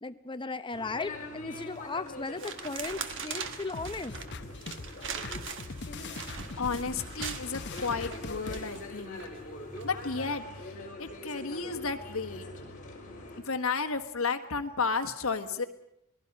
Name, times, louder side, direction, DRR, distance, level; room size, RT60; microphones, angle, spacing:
voice 1, 0.0-4.1, left 3 dB, 20° left, 10 dB, 0.7 m, -36 dB
sound 1, 0.7-13.4, left 2 dB, 40° left, 4.5 m, -44 dB
sound 2, 1.6-1.9 2.4-9.3 9.8-10.0, right 6 dB, 60° right, 1.4 m, -41 dB
sound 3, 3.7-8.6, left 3 dB, 55° left, 0.9 m, -42 dB
voice 2, 6.1-9.2 9.8-12.4 13.4-15.6, left 4 dB, 70° left, 6 dB, 1.5 m, -33 dB
27.0 x 20.0 x 5.4 m, 0.82 s
head